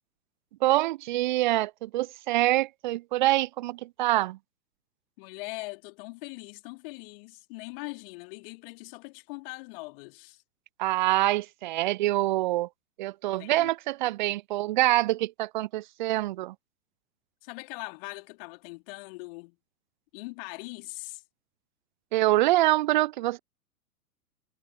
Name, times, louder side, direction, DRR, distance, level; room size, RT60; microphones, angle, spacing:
voice 1, 0.6-4.4 10.8-12.7 13.0-16.5 22.1-23.4, right 16 dB, 30° right, 0.6 m, -25 dB
voice 2, 5.2-10.4 13.4-13.7 17.4-19.6 20.1-21.2, left 26 dB, 35° left, 3.3 m, -41 dB
figure-of-eight pair, 105°, 47 cm